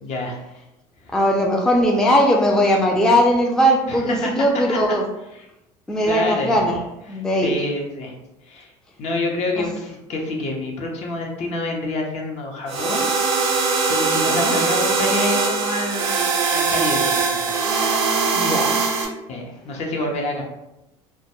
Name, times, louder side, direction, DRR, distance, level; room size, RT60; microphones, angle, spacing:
voice 1, 0.0-0.4 1.0-1.1 3.9-4.3 4.7-4.8 6.0-6.5 7.1-8.1 8.5-8.7 9.0-13.1 13.9-16.3 16.5-17.7 19.3-20.4, left 2 dB, 55° left, 0 dB, 0.6 m, -27 dB
voice 2, 1.1-5.0 5.9-6.8 7.1-7.6 9.6-9.7 14.1-14.6 18.3-18.8, equal, 5° left, 0 dB, 0.3 m, -19 dB
sound 1, 12.7-19.1, right 4 dB, 90° right, 0.5 m, -21 dB
2.2 x 2.1 x 2.9 m, 0.92 s
supercardioid pair, 95°, 14 cm